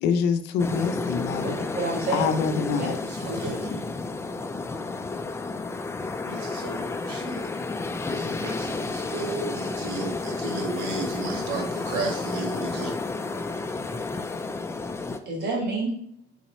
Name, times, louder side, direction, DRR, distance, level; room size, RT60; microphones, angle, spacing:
voice 1, 0.0-1.5 2.1-3.0, left 6 dB, 85° left, 9 dB, 0.5 m, -25 dB
sound 1, 0.6-15.2, left 3 dB, 15° left, 0.3 m, -31 dB
voice 2, 1.4-2.3 2.8-2.9 3.3-3.6 15.2-15.9, right 2 dB, 70° right, -2 dB, 1.6 m, -29 dB
voice 3, 3.0-3.8 6.3-7.5 8.1-12.9, right 3 dB, 90° right, 2 dB, 1.0 m, -34 dB
4.1 x 3.8 x 3.1 m, 0.69 s
cardioid pair, 110°, 17 cm